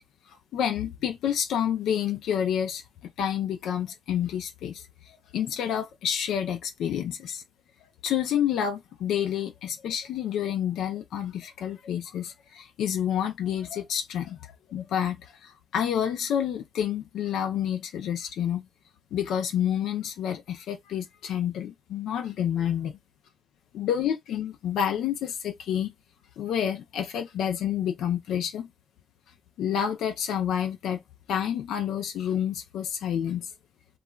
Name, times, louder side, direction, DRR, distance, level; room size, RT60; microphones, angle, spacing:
voice 1, 0.3-2.8 3.2-7.4 7.8-18.7 19.1-22.9 23.7-25.9 26.4-28.7 29.6-31.0 31.3-33.5, left 9 dB, 80° left, 0.4 m, -29 dB
2.3 x 2.2 x 3.0 m
cardioid pair, 90°, 0 cm